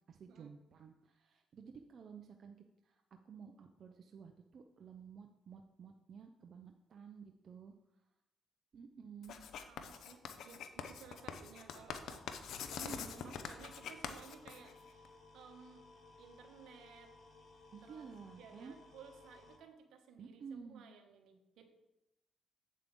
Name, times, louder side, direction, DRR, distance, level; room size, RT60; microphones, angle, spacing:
voice 1, 0.0-2.6 2.8-7.7 8.7-9.4 12.8-13.3 17.7-18.8 20.2-20.9, right 6 dB, 55° right, 4 dB, 0.6 m, -53 dB
Writing, 9.2-15.1, left 7 dB, 75° left, 0.7 m, -45 dB
voice 2, 9.7-12.2 12.7-15.9 16.2-17.1 17.8-18.1 18.4-21.7, right 6 dB, 80° right, 5 dB, 1.2 m, -58 dB
sound 1, 9.9-19.6, left 3 dB, 55° left, 1.5 m, -61 dB
8.2 x 7.5 x 3.8 m, 0.93 s
cardioid pair, 90°, 0 cm